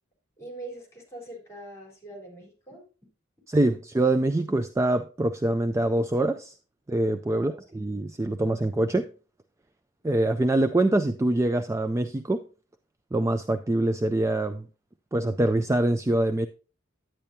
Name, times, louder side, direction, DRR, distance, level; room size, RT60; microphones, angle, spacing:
voice 1, 0.4-2.9 7.3-7.6, right 2 dB, 15° left, 3.8 m, -43 dB
voice 2, 3.5-6.5 6.9-9.1 10.0-12.4 13.1-14.7 15.1-16.5, right 1 dB, 15° right, 0.3 m, -24 dB
10.5 x 8.9 x 2.7 m
head